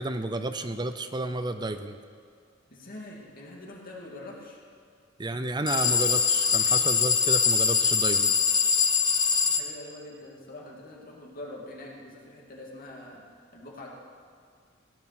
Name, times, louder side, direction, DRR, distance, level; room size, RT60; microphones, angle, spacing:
voice 1, 0.0-2.0 5.2-8.3, right 2 dB, 20° right, 9 dB, 0.6 m, -31 dB
voice 2, 2.7-4.6 9.4-13.2 13.5-13.9, left 1 dB, 45° left, -2 dB, 2.5 m, -44 dB
sound 1, 5.7-9.6, left 6 dB, 20° left, 0.9 m, -23 dB
16.0 x 9.7 x 6.0 m, 2.3 s
head